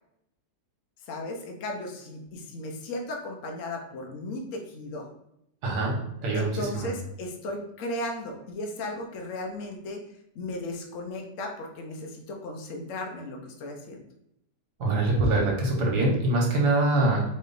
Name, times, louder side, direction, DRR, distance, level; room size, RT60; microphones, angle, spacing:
voice 1, 1.1-5.1 6.3-10.0 10.3-14.0, left 1 dB, 60° left, 2 dB, 0.9 m, -35 dB
voice 2, 5.6-6.0 6.2-6.9 14.8-17.2, right 2 dB, 65° right, -1 dB, 1.5 m, -24 dB
4.2 x 3.1 x 3.9 m, 0.79 s
omnidirectional pair, 1.9 m